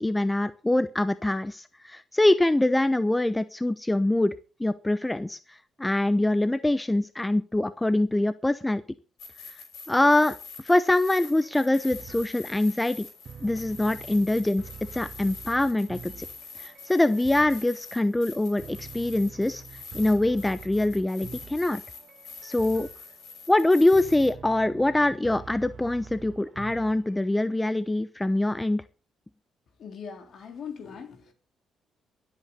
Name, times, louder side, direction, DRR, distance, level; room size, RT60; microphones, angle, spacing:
voice 1, 0.0-4.3 4.6-8.8 9.9-13.1 13.4-14.6 14.9-16.3 16.6-19.6 19.9-21.8 22.4-22.9 23.5-28.8, left 1 dB, 10° left, 0.7 m, -24 dB
sound 1, 9.2-24.3, left 4 dB, 75° left, 5.6 m, -45 dB
sound 2, 11.4-27.3, right 6 dB, 50° right, 1.1 m, -46 dB
voice 2, 29.8-31.3, left 6 dB, 60° left, 3.9 m, -40 dB
23.0 x 8.5 x 4.1 m
cardioid pair, 90°, 0 cm